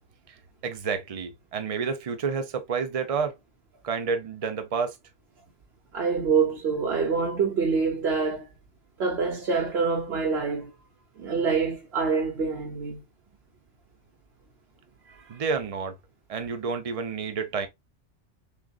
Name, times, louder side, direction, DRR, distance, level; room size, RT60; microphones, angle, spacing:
voice 1, 0.6-3.4 3.8-5.0 15.3-16.0 16.3-17.7, right 5 dB, 40° right, 0.7 m, -29 dB
voice 2, 5.9-8.5 9.0-10.7 11.2-13.0, right 5 dB, 70° right, 1.2 m, -26 dB
6.2 x 2.5 x 2.4 m
omnidirectional pair, 1.1 m